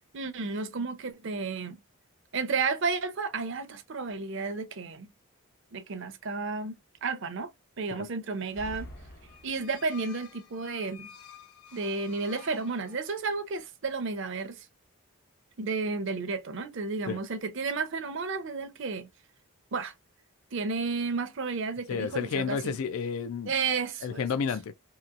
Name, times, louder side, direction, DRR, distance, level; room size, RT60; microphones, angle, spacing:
voice 1, 0.1-1.8 2.3-5.1 5.7-7.5 7.8-8.9 9.4-11.1 11.7-14.7 15.6-19.1 19.7-19.9 20.5-22.8 23.5-24.3, right 4 dB, 55° right, 0.5 m, -32 dB
sound 1, 8.3-10.0, equal, 40° left, 0.9 m, -46 dB
sound 2, 9.2-13.4, left 8 dB, 90° left, 0.8 m, -51 dB
voice 2, 21.9-23.5 24.0-24.7, left 6 dB, 70° left, 0.3 m, -31 dB
2.9 x 2.8 x 2.4 m
head